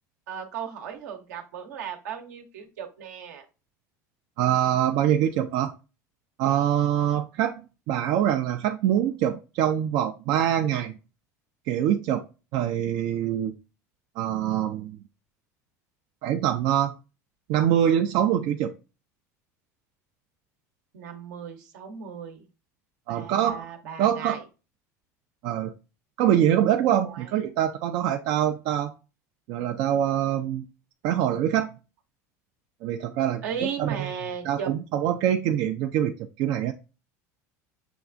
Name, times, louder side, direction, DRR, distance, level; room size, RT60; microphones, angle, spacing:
voice 1, 0.3-3.4 20.9-22.5 23.1-24.4 27.0-27.3 33.4-34.7, right 7 dB, 80° right, 5 dB, 0.8 m, -36 dB
voice 2, 4.4-5.7 6.4-7.6 7.9-10.9 11.7-12.2 12.5-13.5 14.2-15.0 16.2-16.9 17.5-18.7 23.1-23.7 24.0-24.4 25.4-25.7 26.2-28.9 29.5-30.6 31.0-31.7 32.8-33.4 33.8-34.1 34.4-36.7, right 10 dB, 60° right, 5 dB, 0.4 m, -24 dB
6.9 x 2.4 x 2.5 m, 0.32 s
hypercardioid pair, 85°, 9 cm